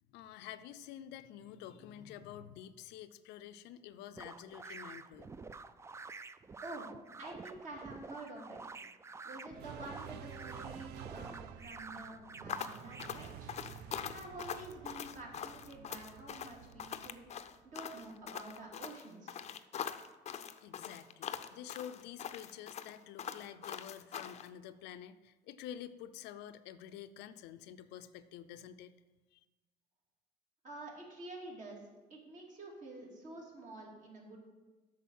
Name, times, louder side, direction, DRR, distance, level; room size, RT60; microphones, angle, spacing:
voice 1, 0.1-5.4 20.4-29.0 29.3-29.4, left 10 dB, 90° left, 11 dB, 0.5 m, -49 dB
sound 1, 4.2-13.1, right 4 dB, 15° right, 0.3 m, -49 dB
voice 2, 7.2-8.6 9.2-13.5 14.1-17.2 17.6-19.4 30.6-34.4, right 2 dB, 50° right, -1 dB, 2.7 m, -48 dB
sound 2, 9.5-18.1, right 8 dB, 70° right, 0.6 m, -51 dB
sound 3, 12.5-24.5, left 8 dB, 40° left, 0.5 m, -43 dB
8.6 x 6.4 x 5.5 m, 1.2 s
cardioid pair, 110°, 17 cm